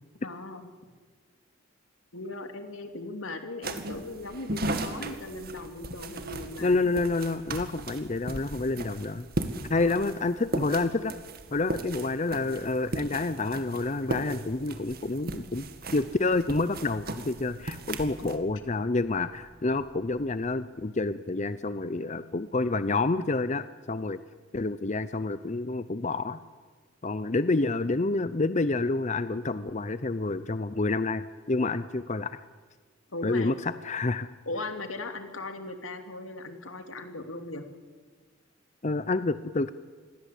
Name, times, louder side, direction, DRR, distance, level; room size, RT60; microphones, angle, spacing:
voice 1, 0.2-0.7 2.1-6.8 9.7-10.1 18.2-18.4 33.1-33.5 34.5-37.6, left 2 dB, 90° left, 6 dB, 2.9 m, -38 dB
sound 1, 3.6-18.4, right 1 dB, 50° right, 2.1 m, -37 dB
voice 2, 6.6-9.3 9.7-11.1 11.5-15.7 15.9-24.2 24.5-26.4 27.0-32.4 33.2-34.3 38.8-39.7, left 3 dB, 35° left, 13 dB, 0.7 m, -28 dB
sound 2, 15.3-20.4 21.1-21.8, equal, 20° left, 4.8 m, -58 dB
27.5 x 21.0 x 8.4 m, 1.5 s
head